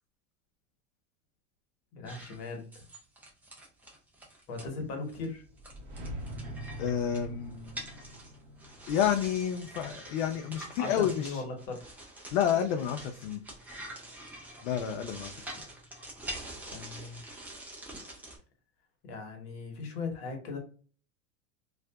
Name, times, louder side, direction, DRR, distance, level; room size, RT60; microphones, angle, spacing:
voice 1, 1.9-2.8 4.5-5.4 10.8-11.8 16.7-17.2 19.0-20.6, left 3 dB, 55° left, 3 dB, 1.0 m, -38 dB
sound 1, 2.1-4.7 5.1-5.3 5.6-18.4, right 1 dB, 5° right, 0.4 m, -46 dB
sound 2, 5.3-10.3, right 1 dB, 40° right, 0.9 m, -44 dB
voice 2, 6.8-7.7 8.9-11.4 12.3-13.4 14.6-15.4, left 9 dB, 75° left, 6 dB, 0.5 m, -30 dB
2.6 x 2.4 x 2.2 m, 0.40 s
supercardioid pair, 140°, 36 cm